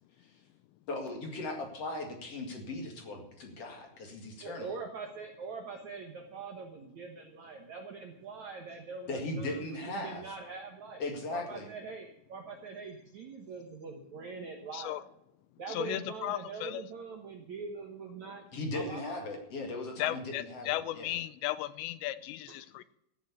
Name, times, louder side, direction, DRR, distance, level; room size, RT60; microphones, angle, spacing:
voice 1, 0.9-4.7 9.1-10.2 11.0-11.7 18.5-21.2, left 2 dB, 45° left, 3 dB, 2.3 m, -38 dB
voice 2, 4.4-11.0 11.3-15.0 15.6-18.4 18.7-19.3 22.5-22.6, right 5 dB, 65° right, 3 dB, 1.8 m, -43 dB
voice 3, 15.7-16.8 20.0-22.8, left 14 dB, 80° left, 15 dB, 2.8 m, -35 dB
15.5 x 7.5 x 8.4 m, 0.78 s
omnidirectional pair, 5.2 m